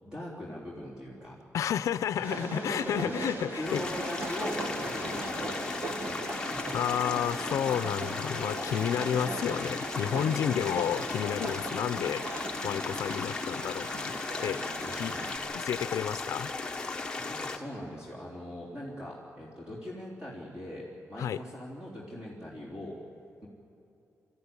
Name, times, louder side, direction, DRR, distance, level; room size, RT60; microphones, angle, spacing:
voice 1, 0.0-1.4 2.2-6.7 10.4-10.7 10.9-11.1 12.3-12.5 14.8-15.3 17.1-23.0, equal, 15° right, -6 dB, 3.6 m, -41 dB
voice 2, 1.5-3.8 6.7-12.3 12.6-14.1 14.4-14.6 14.9-15.1 15.5-16.5 21.2-21.4, left 9 dB, 80° left, 13 dB, 0.5 m, -31 dB
Train, 2.2-15.4, right 2 dB, 45° right, 1.8 m, -39 dB
sound 1, 3.6-17.6, left 3 dB, 15° left, 1.2 m, -36 dB
27.5 x 14.0 x 9.7 m, 2.7 s
wide cardioid pair, 170°, 5 cm